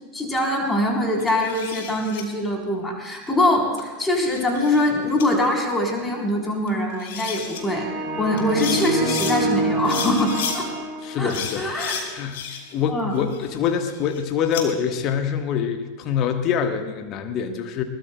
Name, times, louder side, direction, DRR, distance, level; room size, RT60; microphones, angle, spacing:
voice 1, 0.1-7.9 8.2-10.8 11.2-12.0 12.9-13.2, left 1 dB, 10° left, 0 dB, 3.6 m, -23 dB
sound 1, 1.2-2.2 3.8-4.8 5.2-5.3 6.7-6.8 7.0-7.6 8.4-9.4 9.8-10.6 11.3-12.8 13.1-14.6, left 7 dB, 55° left, 2.4 m, -33 dB
sound 2, 7.6-11.5, right 2 dB, 20° right, 3.4 m, -27 dB
voice 2, 11.0-12.4 12.7-17.8, left 7 dB, 35° left, 7 dB, 1.3 m, -25 dB
21.0 x 19.5 x 2.2 m, 1.3 s
figure-of-eight pair, 90°, 0 cm